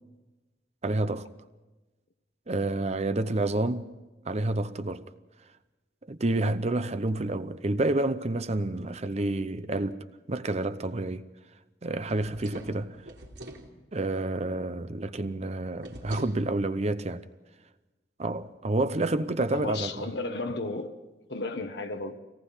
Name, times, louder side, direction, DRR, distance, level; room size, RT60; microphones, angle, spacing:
voice 1, 0.8-1.3 2.5-3.9 4.3-5.1 6.1-11.2 11.8-13.0 13.9-17.2 18.2-20.1, right 2 dB, 35° right, 0.7 m, -29 dB
sound 1, 12.0-13.7 15.8-16.4, right 1 dB, 70° right, 3.3 m, -43 dB
voice 2, 19.5-21.0 21.3-22.2, left 2 dB, 65° left, 1.2 m, -34 dB
25.0 x 18.5 x 5.6 m
head